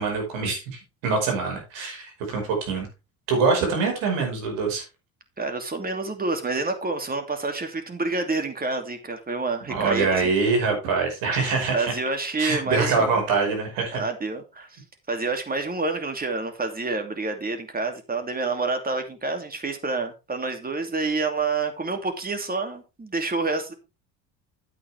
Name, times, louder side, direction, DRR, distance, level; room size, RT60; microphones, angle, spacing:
voice 1, 0.0-2.9 3.3-4.8 9.7-11.9 12.4-14.0, right 4 dB, 80° right, 5.3 m, -24 dB
voice 2, 5.4-10.3 11.7-13.2 13.9-14.8 15.1-23.7, right 3 dB, 25° right, 2.8 m, -28 dB
9.7 x 8.5 x 3.5 m
supercardioid pair, 75°, 35 cm